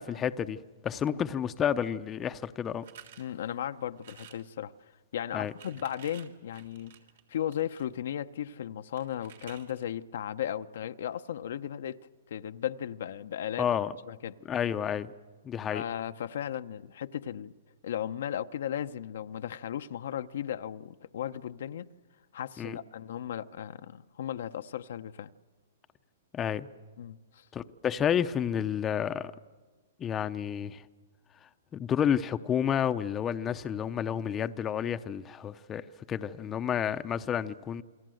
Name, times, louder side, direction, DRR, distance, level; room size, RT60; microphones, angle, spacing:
voice 1, 0.0-2.8 5.3-5.5 13.6-13.9 14.5-15.1 15.4-15.8 22.6-22.8 26.3-26.7 27.5-29.3 30.0-30.8 31.4-37.8, left 9 dB, 20° left, 0.7 m, -30 dB
sound 1, 2.8-3.3 4.0-4.5 5.3-7.9 9.0-9.9, right 9 dB, 70° right, 3.4 m, -52 dB
voice 2, 3.2-4.7 5.1-6.9 7.3-12.0 12.3-13.7 14.1-14.3 15.7-17.5 17.8-21.9 22.3-25.3 27.0-27.4, left 10 dB, 70° left, 0.8 m, -36 dB
28.5 x 22.0 x 7.8 m
hypercardioid pair, 140°, 0 cm